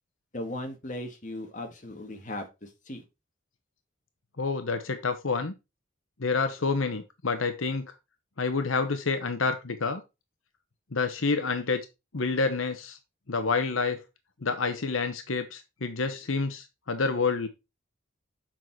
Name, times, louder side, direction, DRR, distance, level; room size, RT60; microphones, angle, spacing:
voice 1, 0.3-3.0, left 1 dB, 40° left, 1.8 m, -37 dB
voice 2, 4.4-5.5 6.2-7.8 8.4-10.0 10.9-11.9 12.1-13.0 13.3-14.0 14.4-17.5, left 4 dB, 80° left, 1.0 m, -28 dB
7.5 x 5.9 x 4.6 m
head